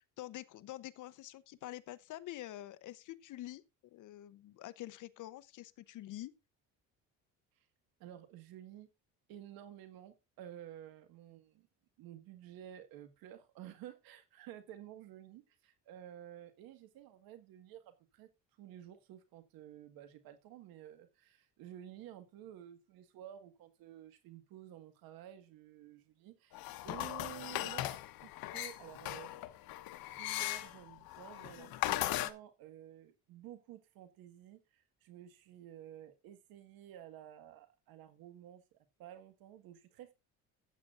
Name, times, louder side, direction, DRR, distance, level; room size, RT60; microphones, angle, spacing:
voice 1, 0.0-3.6 3.9-6.3, left 15 dB, 60° left, 0.8 m, -47 dB
voice 2, 8.0-8.9 9.3-11.7 12.0-18.3 18.6-29.3 30.0-40.1, right 11 dB, 80° right, 1.7 m, -52 dB
sound 1, 26.5-32.3, left 16 dB, 80° left, 1.1 m, -38 dB
14.5 x 8.5 x 2.5 m
cardioid pair, 130°, 35 cm